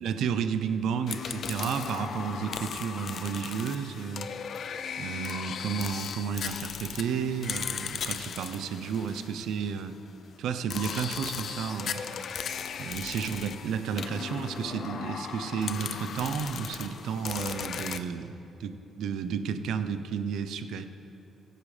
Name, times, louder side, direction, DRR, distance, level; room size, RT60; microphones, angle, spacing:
voice 1, 0.0-4.3 5.0-9.9 10.4-12.0 12.8-18.3 18.6-20.8, right 7 dB, 80° right, 10 dB, 0.6 m, -32 dB
sound 1, 1.1-9.9 10.7-18.0, left 7 dB, 60° left, 0.5 m, -37 dB
16.5 x 8.6 x 3.4 m, 2.9 s
cardioid pair, 90°, 0 cm